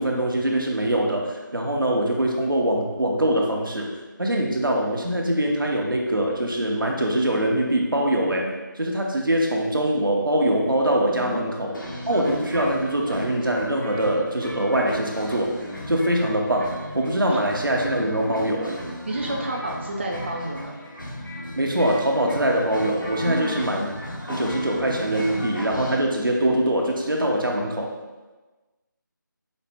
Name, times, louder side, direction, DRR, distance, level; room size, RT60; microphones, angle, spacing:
voice 1, 0.0-3.9 4.2-11.7 12.1-18.8 21.6-23.9 24.3-27.9, right 1 dB, 90° right, 0 dB, 0.8 m, -23 dB
voice 2, 11.1-11.4 19.1-20.8 23.3-23.7, right 1 dB, 35° right, -1 dB, 0.3 m, -30 dB
sound 1, 11.7-26.0, left 1 dB, 70° left, 1.0 m, -35 dB
5.0 x 2.1 x 3.4 m, 1.2 s
figure-of-eight pair, 160°, 11 cm